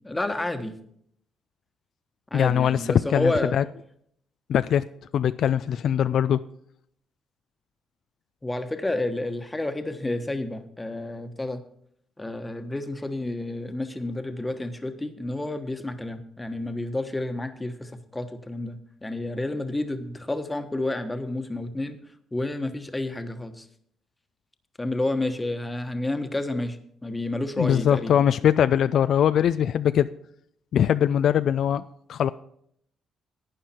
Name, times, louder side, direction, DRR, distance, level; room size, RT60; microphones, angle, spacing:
voice 1, 0.0-0.7 2.3-3.6 8.4-11.6 12.2-22.0 22.3-23.7 24.8-28.1, left 2 dB, 15° left, 8 dB, 1.2 m, -30 dB
voice 2, 2.3-3.6 4.5-4.8 5.1-6.4 27.6-30.1 30.7-32.3, left 9 dB, 70° left, 13 dB, 0.3 m, -22 dB
11.5 x 9.1 x 4.4 m, 0.68 s
cardioid pair, 90°, 0 cm